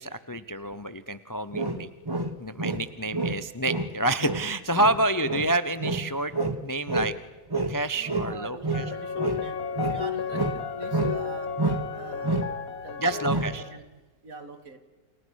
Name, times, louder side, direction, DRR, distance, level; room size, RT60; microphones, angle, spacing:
voice 1, 0.0-1.9 2.4-6.3 6.6-7.1 7.7-8.9 13.0-13.6, right 2 dB, 20° left, 14 dB, 0.6 m, -28 dB
sound 1, 1.5-2.9 3.1-7.2 7.5-9.5 9.8-11.3 11.6-12.0 12.2-12.5 13.2-13.6, right 2 dB, 15° right, 1.3 m, -29 dB
voice 2, 7.9-11.6 11.9-13.8 14.2-14.8, right 4 dB, 60° right, 9 dB, 2.8 m, -43 dB
sound 2, 8.7-13.8, left 6 dB, 70° left, 1.6 m, -33 dB
29.5 x 29.0 x 6.4 m, 1.2 s
omnidirectional pair, 1.6 m